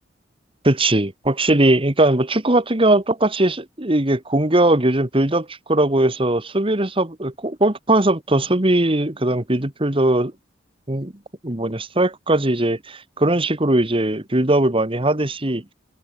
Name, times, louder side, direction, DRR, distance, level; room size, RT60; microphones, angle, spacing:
voice 1, 0.6-10.3 10.9-11.1 11.4-15.7, right 1 dB, 30° right, 1.9 m, -19 dB
open air
head